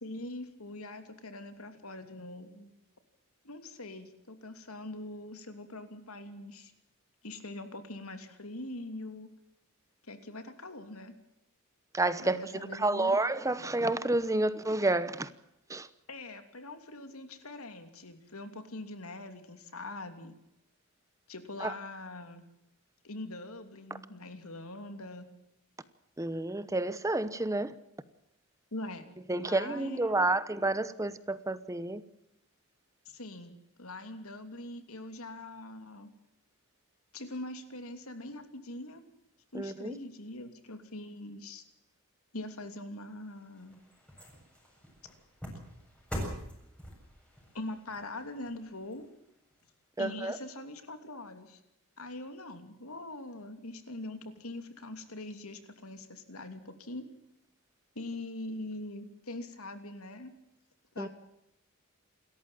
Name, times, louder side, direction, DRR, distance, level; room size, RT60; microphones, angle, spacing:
voice 1, 0.0-2.7 3.4-6.7 7.2-9.3 10.0-11.1 12.2-13.2 16.1-20.4 21.3-22.4 23.0-25.3 28.7-30.4 33.0-36.1 37.1-39.0 39.5-41.6 42.3-43.8 47.5-49.1 50.0-51.6 52.0-57.1 57.9-60.3 60.9-61.1, left 2 dB, 75° left, 3.0 m, -43 dB
voice 2, 11.9-12.4 12.7-15.3 15.7-15.9 21.6-21.7 26.2-27.8 29.3-32.0 39.5-40.0 50.0-50.4 61.0-61.1, right 2 dB, 15° right, 0.9 m, -30 dB
sound 1, 43.1-49.6 50.1-50.2, equal, 5° left, 7.5 m, -44 dB
28.5 x 14.0 x 7.6 m
head